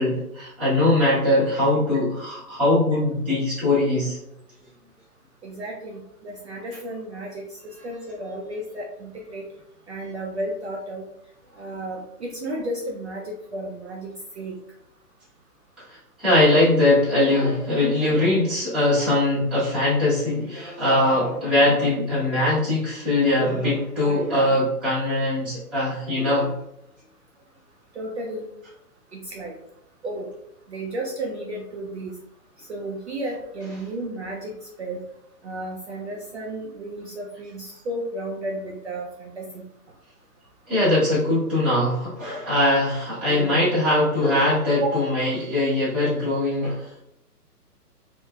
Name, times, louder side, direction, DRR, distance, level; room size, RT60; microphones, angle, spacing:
voice 1, 0.0-4.2 16.2-26.5 40.7-47.0, left 1 dB, ahead, -14 dB, 0.7 m, -21 dB
voice 2, 5.4-9.4 9.9-11.0 11.6-14.6 27.9-28.5 29.1-29.5 30.0-30.3 30.7-32.1 32.6-35.0 35.4-39.6 44.8-45.0, right 1 dB, 45° right, -2 dB, 0.4 m, -33 dB
3.3 x 2.1 x 2.3 m, 0.80 s
figure-of-eight pair, 135°, 48 cm